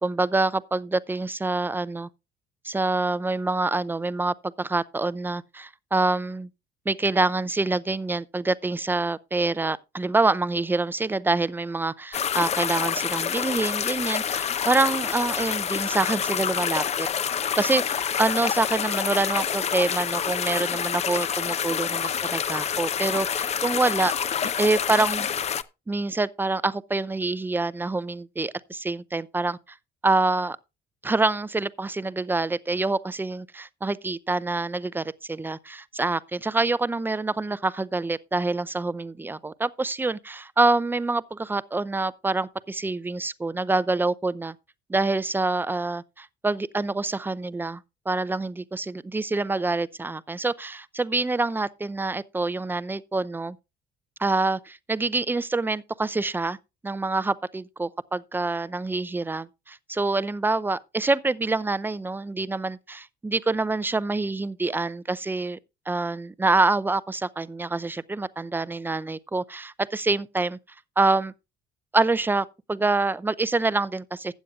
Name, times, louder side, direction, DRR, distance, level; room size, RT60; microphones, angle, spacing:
voice 1, 0.0-2.1 2.6-6.5 6.9-17.1 17.6-24.1 24.6-25.3 25.9-29.6 30.0-30.6 31.0-44.5 44.9-47.8 48.1-53.6 54.2-56.6 56.8-65.6 65.9-70.6 71.0-71.3 71.9-74.3, right 3 dB, 10° right, 0.5 m, -26 dB
sound 1, 12.1-25.6, left 8 dB, 40° left, 0.7 m, -27 dB
15.5 x 9.1 x 2.4 m
cardioid pair, 110°, 17 cm